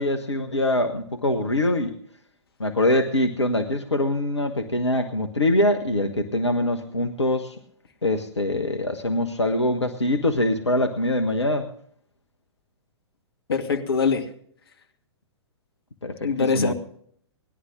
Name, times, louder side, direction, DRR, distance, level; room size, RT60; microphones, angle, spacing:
voice 1, 0.0-1.9 2.6-7.6 8.0-11.7 16.0-16.7, left 1 dB, 75° left, 5 dB, 1.1 m, -23 dB
voice 2, 13.5-14.3 16.2-16.7, left 5 dB, 55° left, 7 dB, 1.5 m, -23 dB
19.0 x 11.0 x 3.7 m, 0.63 s
figure-of-eight pair, 115°, 15 cm